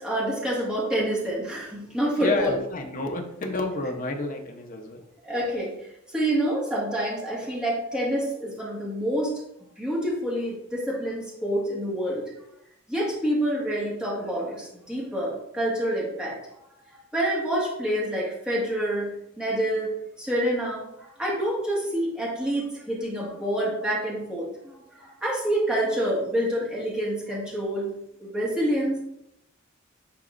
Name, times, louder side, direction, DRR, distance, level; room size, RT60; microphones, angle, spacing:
voice 1, 0.0-2.6 5.2-5.7 6.1-9.4 9.8-12.2 12.9-16.4 17.1-19.9 20.2-27.9 28.2-29.1, right 1 dB, 5° right, -6 dB, 1.8 m, -27 dB
voice 2, 2.2-5.0, left 2 dB, 40° left, 3 dB, 0.9 m, -29 dB
10.0 x 4.1 x 2.6 m, 0.80 s
head